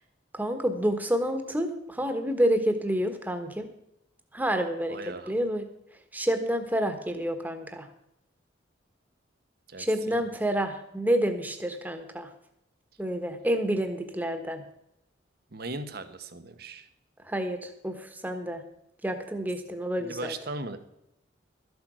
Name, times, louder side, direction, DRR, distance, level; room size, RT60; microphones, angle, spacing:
voice 1, 0.3-3.7 4.3-5.0 5.3-5.7 6.1-7.9 9.8-12.3 13.0-14.6 17.2-18.6 19.0-20.3, equal, 10° right, 7 dB, 1.3 m, -28 dB
voice 2, 4.9-5.4 9.7-10.2 15.5-16.9 20.0-20.8, right 2 dB, 55° right, 9 dB, 1.1 m, -38 dB
13.0 x 8.0 x 6.3 m, 0.82 s
head